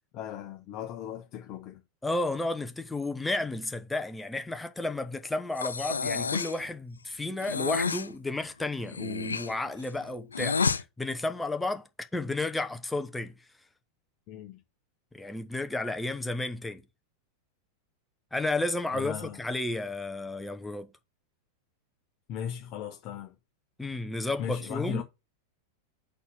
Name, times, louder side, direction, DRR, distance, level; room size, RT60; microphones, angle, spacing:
voice 1, 0.1-1.8 14.3-14.6 18.9-19.4 22.3-23.4 24.4-25.0, left 9 dB, 40° left, 0.9 m, -37 dB
voice 2, 2.0-13.3 15.1-16.8 18.3-20.9 23.8-25.0, left 2 dB, 5° left, 0.8 m, -32 dB
Breathing, 5.6-6.6 7.4-8.1 8.8-10.8, left 5 dB, 75° left, 0.3 m, -30 dB
5.9 x 4.2 x 5.5 m
figure-of-eight pair, 90°, 0 cm